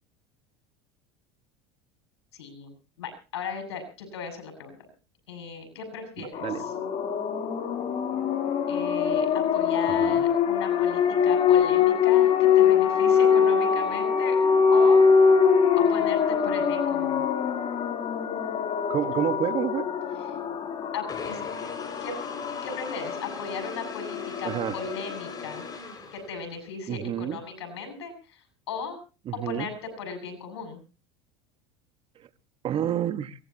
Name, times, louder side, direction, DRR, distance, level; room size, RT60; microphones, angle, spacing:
voice 1, 2.3-4.7 5.3-6.7 8.7-14.4 14.7-15.0 15.8-17.3 20.2-20.3 20.9-21.4 22.0-22.2 22.6-25.6 26.1-29.0 29.3-30.8, left 5 dB, 90° left, 8 dB, 6.6 m, -37 dB
voice 2, 6.2-6.6 10.0-10.2 18.9-19.9 24.4-24.7 26.9-27.4 29.3-29.7 32.6-33.3, right 10 dB, 40° right, 12 dB, 1.4 m, -29 dB
sound 1, 6.3-25.8, left 7 dB, 45° left, 3.3 m, -23 dB
sound 2, 21.1-26.7, left 4 dB, 30° left, 5.6 m, -41 dB
23.5 x 18.5 x 2.9 m, 0.34 s
supercardioid pair, 100°, 14 cm